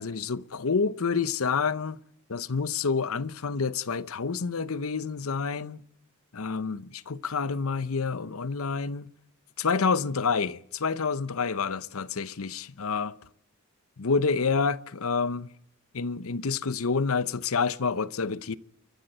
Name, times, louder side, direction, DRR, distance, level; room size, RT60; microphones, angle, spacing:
voice 1, 0.0-2.0 2.3-5.8 6.3-9.1 9.6-13.1 14.0-15.5 15.9-18.6, left 5 dB, 75° left, 0.8 m, -28 dB
30.0 x 14.0 x 7.9 m
head